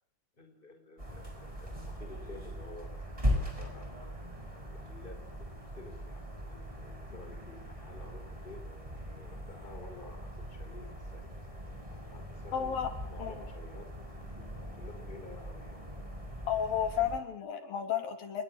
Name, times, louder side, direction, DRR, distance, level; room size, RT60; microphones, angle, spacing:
voice 1, 0.4-3.9 4.4-8.6 9.2-11.3 11.6-12.7 13.1-13.9 14.2-14.5 14.7-15.8, left 3 dB, 15° left, 6 dB, 4.7 m, -52 dB
sound 1, 1.0-17.2, equal, 10° right, 6.5 m, -40 dB
voice 2, 12.5-12.9 13.2-13.5 16.5-18.4, left 8 dB, 85° left, 7 dB, 4.8 m, -32 dB
29.5 x 21.5 x 7.3 m, 0.64 s
omnidirectional pair, 4.0 m